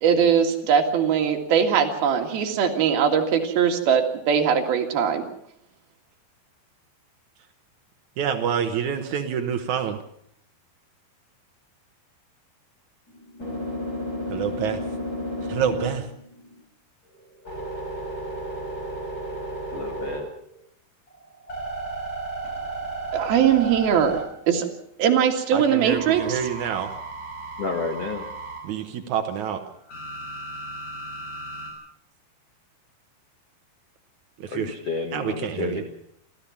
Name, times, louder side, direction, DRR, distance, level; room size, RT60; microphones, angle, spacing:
voice 1, 0.0-5.2 23.1-24.1 24.5-24.7 25.0-26.4, right 7 dB, 60° right, 4 dB, 3.6 m, -21 dB
voice 2, 8.2-10.0 14.3-14.8 15.5-16.1 25.5-26.9 28.6-29.6 34.4-34.8 35.1-35.8, right 8 dB, 85° right, 6 dB, 1.6 m, -27 dB
sound 1, 13.1-16.6 17.1-20.6 21.1-24.8 25.9-28.6 29.9-31.7, right 1 dB, 20° left, 6.6 m, -34 dB
voice 3, 19.7-20.3 27.6-28.2 34.5-35.8, left 4 dB, 65° left, 6 dB, 1.5 m, -30 dB
27.0 x 14.0 x 7.2 m, 0.71 s
omnidirectional pair, 5.2 m